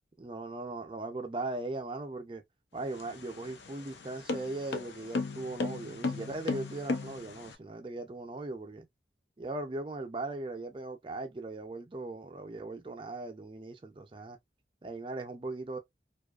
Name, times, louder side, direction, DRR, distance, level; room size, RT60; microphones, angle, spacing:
voice 1, 0.2-2.4 2.7-8.9 9.4-14.4 14.8-15.8, right 2 dB, 30° right, 0.4 m, -39 dB
sound 1, 2.8-7.5, left 3 dB, 85° left, 0.5 m, -36 dB
2.6 x 2.3 x 2.2 m
head